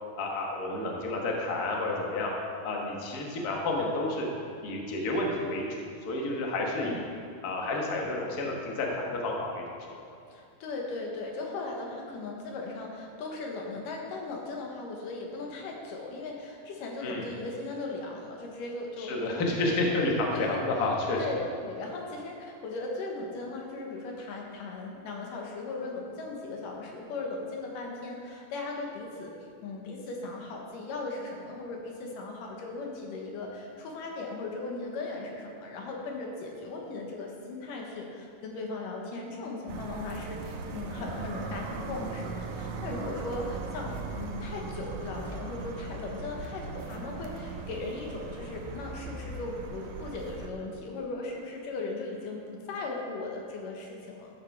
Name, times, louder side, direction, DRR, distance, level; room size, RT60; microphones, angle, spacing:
voice 1, 0.2-2.3 2.6-4.3 4.6-7.0 7.4-10.1 17.0-17.3 19.0-21.2, left 2 dB, 45° left, -1 dB, 1.2 m, -30 dB
voice 2, 10.3-19.9 20.3-20.6 21.2-29.3 29.6-54.3, left 3 dB, 85° left, 0 dB, 2.9 m, -38 dB
sound 1, 39.7-50.5, right 4 dB, 90° right, 2.4 m, -39 dB
13.0 x 6.9 x 4.8 m, 2.5 s
omnidirectional pair, 3.7 m